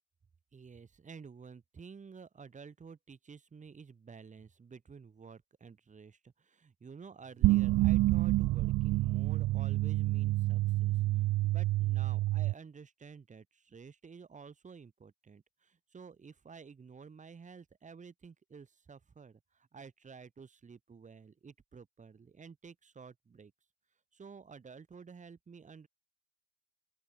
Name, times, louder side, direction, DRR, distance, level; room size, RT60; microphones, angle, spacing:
voice 1, 0.5-23.5 24.1-25.9, right 5 dB, 35° right, 5.6 m, -52 dB
sound 1, 7.4-12.5, right 18 dB, 75° right, 0.4 m, -28 dB
open air
cardioid pair, 90°, 21 cm